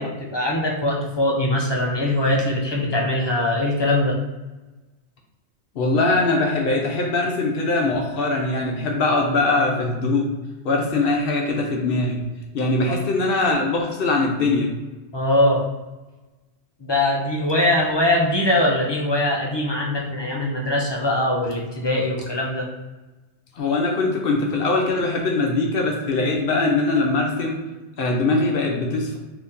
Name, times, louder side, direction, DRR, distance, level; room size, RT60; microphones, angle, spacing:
voice 1, 0.0-4.2 12.9-13.0 15.1-15.6 16.8-22.7, left 1 dB, 40° left, -2 dB, 0.4 m, -22 dB
voice 2, 5.7-10.3 10.6-12.2 12.5-14.7 23.5-27.6 28.0-29.2, left 2 dB, 60° left, 0 dB, 0.8 m, -21 dB
2.8 x 2.7 x 3.5 m, 1.1 s
omnidirectional pair, 1.2 m